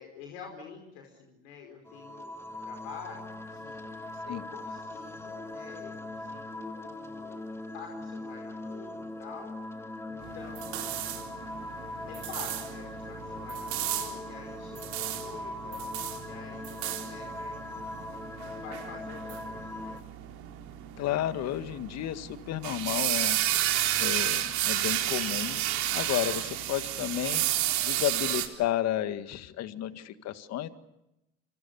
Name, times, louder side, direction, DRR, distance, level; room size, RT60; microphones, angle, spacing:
voice 1, 0.0-9.8 10.0-10.9 12.1-16.0 16.2-20.0 21.0-21.5 23.5-24.0 29.7-30.1, left 6 dB, 75° left, 2 dB, 5.2 m, -48 dB
sound 1, 1.9-20.0, left 2 dB, 10° left, 2.4 m, -40 dB
sound 2, 10.2-28.5, right 13 dB, 65° right, 4.0 m, -32 dB
voice 2, 21.0-23.4 24.0-27.5 27.8-30.7, left 12 dB, 55° left, 10 dB, 2.0 m, -32 dB
28.5 x 26.0 x 6.9 m, 0.90 s
hypercardioid pair, 75°, 31 cm